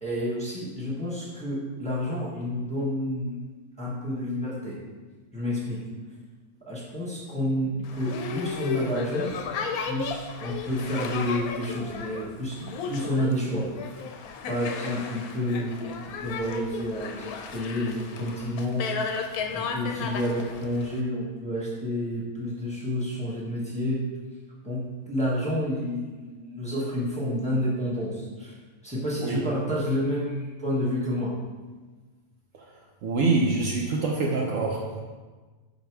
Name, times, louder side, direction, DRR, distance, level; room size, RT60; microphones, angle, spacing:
voice 1, 0.0-3.4 3.8-4.7 5.3-5.8 6.7-9.3 9.9-12.5 12.8-14.0 14.5-15.9 16.2-18.8 19.5-24.0 24.6-28.5 28.8-31.3, left 1 dB, 5° left, -7 dB, 1.2 m, -29 dB
Boat Water vehicle, 7.8-21.0, left 5 dB, 80° left, 1.1 m, -34 dB
voice 2, 33.0-35.0, right 3 dB, 65° right, 0 dB, 0.9 m, -25 dB
5.3 x 3.9 x 4.6 m, 1.3 s
omnidirectional pair, 1.6 m